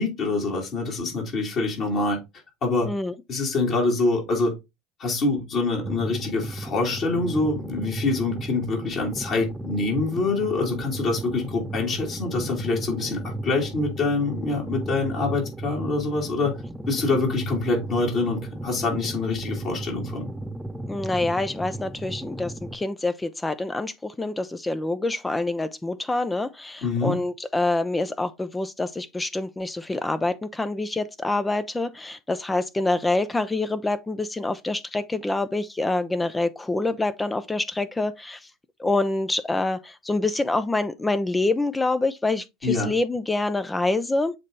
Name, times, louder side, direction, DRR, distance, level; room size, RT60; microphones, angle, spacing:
voice 1, 0.0-2.2 2.6-2.9 3.3-4.5 5.0-16.5 16.9-20.3 26.8-27.2 42.6-42.9, left 3 dB, 50° left, 3.1 m, -25 dB
sound 1, 5.8-22.8, right 1 dB, 10° right, 0.9 m, -35 dB
voice 2, 20.9-38.4 38.8-44.3, left 2 dB, 15° left, 0.6 m, -26 dB
7.5 x 3.1 x 4.0 m
hypercardioid pair, 70°, 0 cm